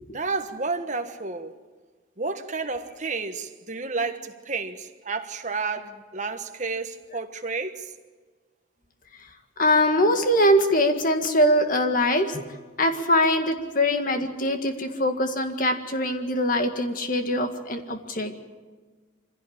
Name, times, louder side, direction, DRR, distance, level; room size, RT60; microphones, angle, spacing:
voice 1, 0.1-1.6 2.2-7.9, right 4 dB, 35° right, 1.4 m, -31 dB
voice 2, 9.6-12.4 12.8-18.3, left 1 dB, 40° left, 1.9 m, -22 dB
25.0 x 16.5 x 8.8 m
head